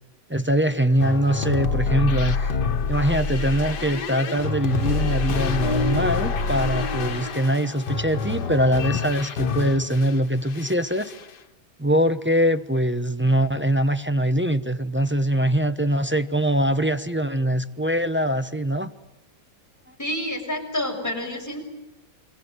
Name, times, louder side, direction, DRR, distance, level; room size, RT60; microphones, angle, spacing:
voice 1, 0.3-2.5 2.9-11.1 11.8-18.9, right 1 dB, 10° right, 9 dB, 0.5 m, -23 dB
sound 1, 1.0-10.2 10.5-11.3, left 4 dB, 75° left, 2.0 m, -26 dB
voice 2, 20.0-21.6, left 1 dB, 10° left, 1 dB, 6.4 m, -28 dB
28.5 x 24.0 x 8.0 m, 0.98 s
omnidirectional pair, 1.8 m